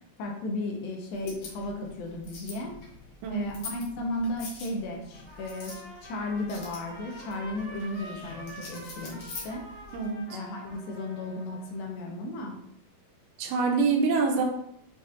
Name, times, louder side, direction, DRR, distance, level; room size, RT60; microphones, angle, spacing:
voice 1, 0.2-2.7 3.3-9.6 10.3-12.6, left 2 dB, 80° left, 1 dB, 2.4 m, -35 dB
sound 1, 1.1-10.1, left 4 dB, 65° left, 2.0 m, -45 dB
voice 2, 3.2-3.5 9.9-10.4 13.4-14.4, right 4 dB, 90° right, 0 dB, 2.5 m, -26 dB
Trumpet, 5.1-11.9, equal, 45° right, 0.5 m, -47 dB
7.2 x 2.4 x 2.8 m, 0.71 s
omnidirectional pair, 4.4 m